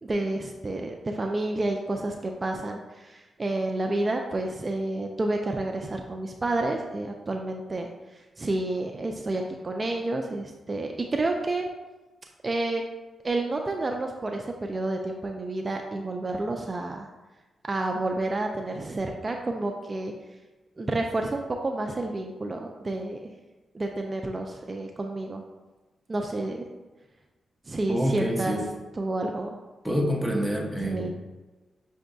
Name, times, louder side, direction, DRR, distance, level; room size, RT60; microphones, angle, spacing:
voice 1, 0.0-11.7 12.4-12.8 13.2-17.1 17.7-20.1 20.8-23.2 23.7-25.4 26.1-26.6 27.7-28.6 29.0-29.6 30.8-31.1, right 2 dB, 35° right, 3 dB, 0.3 m, -30 dB
voice 2, 27.9-28.6 29.8-31.1, equal, 5° left, 0 dB, 0.8 m, -27 dB
5.8 x 2.6 x 2.3 m, 1.2 s
cardioid pair, 60°, 0 cm